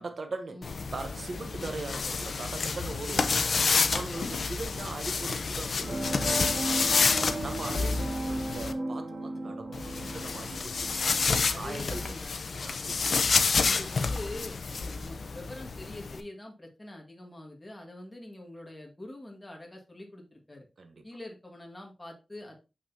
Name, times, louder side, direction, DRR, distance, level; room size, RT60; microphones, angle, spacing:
voice 1, 0.0-0.6 0.9-3.5 3.9-11.1 11.6-12.0 12.5-13.2 13.7-13.8 20.8-21.0, right 3 dB, 55° right, 0.8 m, -41 dB
sound 1, 0.6-8.7 9.7-16.2, left 4 dB, 60° left, 0.6 m, -29 dB
voice 2, 4.1-4.5 9.4-9.6 11.5-12.4 13.6-20.7 21.0-22.5, left 1 dB, 15° left, 1.7 m, -44 dB
sound 2, 5.8-12.1, right 2 dB, 70° right, 2.3 m, -36 dB
6.6 x 6.0 x 2.7 m
wide cardioid pair, 155°, 0 cm